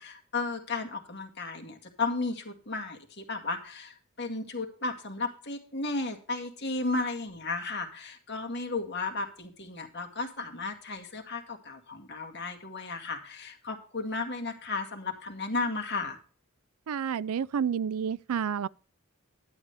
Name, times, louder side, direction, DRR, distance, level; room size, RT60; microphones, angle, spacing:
voice 1, 0.0-16.2, left 3 dB, 50° left, 2.0 m, -34 dB
voice 2, 16.9-18.7, right 7 dB, 85° right, 0.4 m, -30 dB
11.5 x 9.7 x 3.4 m
head